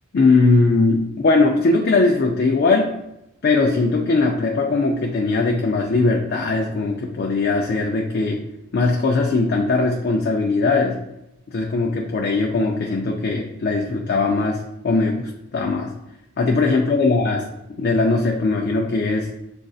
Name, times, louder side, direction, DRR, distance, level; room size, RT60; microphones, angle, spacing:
voice 1, 0.1-3.0 3.4-8.4 8.7-11.0 11.5-16.0 16.4-19.3, left 3 dB, 50° left, 0 dB, 0.4 m, -20 dB
7.5 x 2.5 x 2.4 m, 0.86 s
head